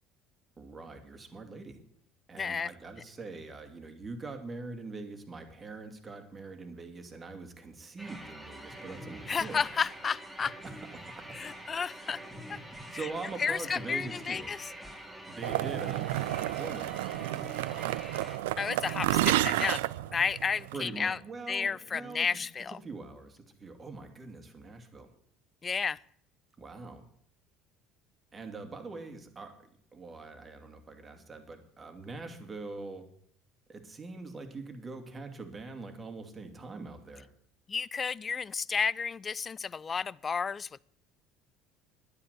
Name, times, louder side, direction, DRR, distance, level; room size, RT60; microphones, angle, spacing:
voice 1, 0.6-1.8 2.3-9.6 10.6-11.4 12.1-12.2 12.9-14.5 15.0-16.9 20.7-22.3 22.7-25.1 26.6-27.0 28.3-29.5 29.9-33.1 33.7-37.3, right 3 dB, 25° right, 2.6 m, -43 dB
voice 2, 2.4-2.7 9.3-10.6 11.3-12.2 12.5-12.6 12.9-13.0 13.4-14.6 18.6-19.8 20.1-21.2 21.5-22.8 25.6-26.0 37.7-40.8, left 6 dB, 30° left, 0.4 m, -32 dB
sound 1, 8.0-18.4, right 1 dB, 5° right, 3.5 m, -45 dB
sound 2, 15.4-20.8, right 16 dB, 70° right, 0.4 m, -31 dB
11.0 x 9.9 x 8.1 m
hypercardioid pair, 65°, 0 cm